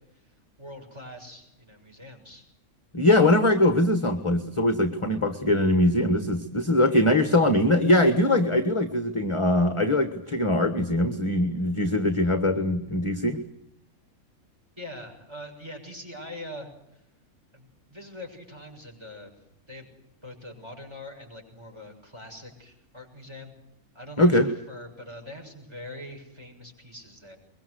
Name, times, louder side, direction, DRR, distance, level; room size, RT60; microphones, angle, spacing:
voice 1, 0.1-2.4 14.8-17.0 17.5-19.3 19.7-19.9 20.2-23.5 23.9-27.4, left 1 dB, 20° right, 3 dB, 6.8 m, -43 dB
voice 2, 2.9-13.4 24.2-24.5, left 1 dB, 20° left, 9 dB, 1.5 m, -22 dB
23.5 x 22.5 x 8.0 m, 0.82 s
omnidirectional pair, 1.5 m